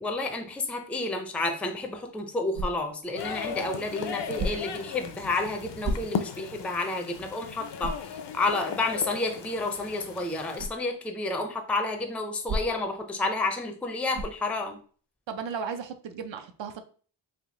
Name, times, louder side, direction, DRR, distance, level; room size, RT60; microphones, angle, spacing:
voice 1, 0.0-14.8, left 2 dB, 5° left, 5 dB, 0.4 m, -30 dB
sound 1, 2.5-3.1 4.3-4.9 5.8-6.4 6.9-7.0 7.8-8.1 10.6-10.8 12.5-13.0 14.1-14.5, right 1 dB, 50° right, 0.9 m, -33 dB
sound 2, 3.2-10.7, left 7 dB, 70° left, 0.5 m, -37 dB
voice 2, 15.3-16.8, right 6 dB, 80° right, 8 dB, 0.6 m, -35 dB
3.4 x 2.7 x 3.7 m, 0.42 s
wide cardioid pair, 135°, 44 cm